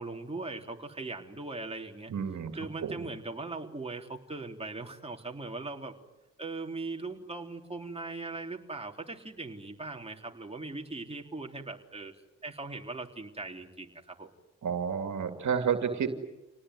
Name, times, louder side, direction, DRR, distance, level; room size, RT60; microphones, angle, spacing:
voice 1, 0.0-2.1 2.5-5.9 6.4-12.1 12.4-14.3, right 3 dB, 20° right, 2 dB, 3.7 m, -39 dB
voice 2, 2.1-2.9 14.6-16.2, right 7 dB, 70° right, 6 dB, 2.6 m, -31 dB
28.0 x 19.0 x 9.7 m, 1.0 s
supercardioid pair, 55°, 30 cm